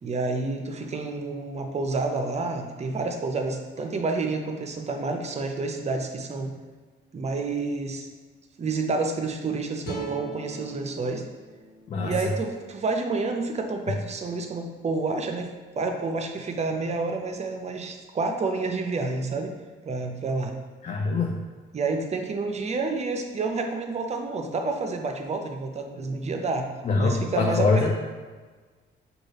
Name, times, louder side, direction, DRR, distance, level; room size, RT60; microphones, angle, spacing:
voice 1, 0.0-6.5 7.1-8.1 8.6-11.2 12.0-19.5 19.8-20.6 21.7-26.7 27.0-27.9, right 3 dB, 35° right, 4 dB, 0.5 m, -29 dB
sound 1, 9.8-13.0, right 3 dB, 55° left, 1.2 m, -40 dB
voice 2, 20.8-21.3 26.8-27.9, left 3 dB, 35° left, 0 dB, 0.4 m, -23 dB
5.2 x 2.4 x 3.3 m, 1.4 s
cardioid pair, 90°, 20 cm